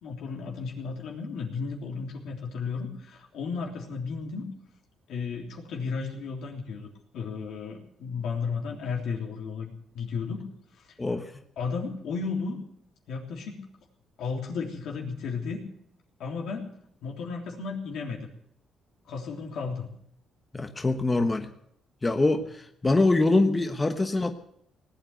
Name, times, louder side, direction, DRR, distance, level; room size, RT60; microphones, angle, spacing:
voice 1, 0.0-4.5 5.1-6.9 7.1-10.4 10.8-10.9 11.6-12.6 13.1-13.6 14.2-15.7 16.2-16.7 17.0-18.3 19.1-20.0, left 5 dB, 80° left, 1 dB, 3.4 m, -34 dB
voice 2, 11.0-11.3 20.5-21.5 22.0-24.3, left 2 dB, 20° left, 6 dB, 1.2 m, -24 dB
19.0 x 8.9 x 7.9 m, 0.70 s
cardioid pair, 90°, 0 cm